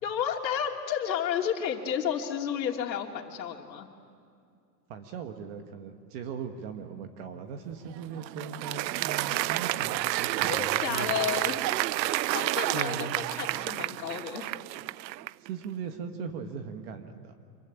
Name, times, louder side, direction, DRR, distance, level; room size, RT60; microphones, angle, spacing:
voice 1, 0.0-3.9 10.5-11.8 12.3-14.5, left 9 dB, 90° left, 2 dB, 3.1 m, -32 dB
voice 2, 4.9-11.1 12.7-13.1 15.4-17.3, right 6 dB, 35° right, 6 dB, 1.4 m, -39 dB
Applause, 7.9-15.5, right 17 dB, 85° right, 0.6 m, -30 dB
27.0 x 23.0 x 8.9 m, 2.4 s
supercardioid pair, 170°, 50 cm